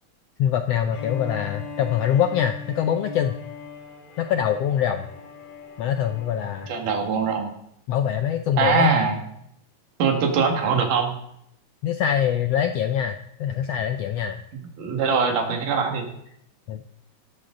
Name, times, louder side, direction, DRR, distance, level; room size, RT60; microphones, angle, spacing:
voice 1, 0.4-3.4 4.2-5.0 5.8-6.7 7.9-8.9 11.8-14.4 16.7-16.9, left 9 dB, 80° left, 7 dB, 1.4 m, -24 dB
Bowed string instrument, 0.9-6.9, left 5 dB, 60° left, 3.8 m, -40 dB
voice 2, 6.7-7.5 8.6-9.2 10.0-11.1 14.8-16.1, right 5 dB, 85° right, 3 dB, 3.5 m, -22 dB
16.5 x 13.0 x 3.8 m, 0.76 s
omnidirectional pair, 3.6 m